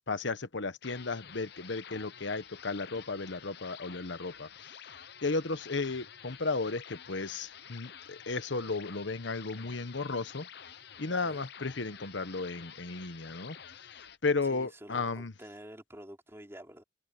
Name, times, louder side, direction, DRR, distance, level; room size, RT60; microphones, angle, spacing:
voice 1, 0.1-4.7 5.2-10.5 11.0-13.6 13.9-15.3, left 3 dB, 90° left, 1.2 m, -34 dB
sound 1, 0.8-14.2, left 8 dB, 60° left, 0.9 m, -50 dB
voice 2, 11.0-11.4 14.5-16.8, right 1 dB, 15° right, 3.7 m, -49 dB
head